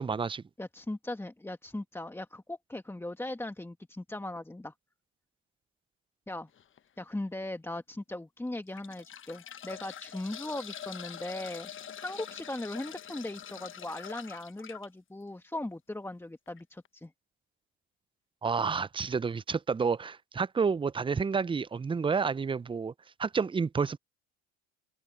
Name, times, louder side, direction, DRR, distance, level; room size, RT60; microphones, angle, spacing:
voice 1, 0.0-0.4 18.4-22.9 23.2-24.0, right 5 dB, 15° right, 0.6 m, -29 dB
voice 2, 0.6-4.7 6.3-6.5 7.0-11.7 12.0-17.1, left 1 dB, 5° left, 2.0 m, -39 dB
sound 1, 6.5-6.8 7.4-7.5 8.5-14.9 16.5-16.6 16.8-16.9, left 9 dB, 35° left, 1.3 m, -45 dB
open air
hypercardioid pair, 75°, 34 cm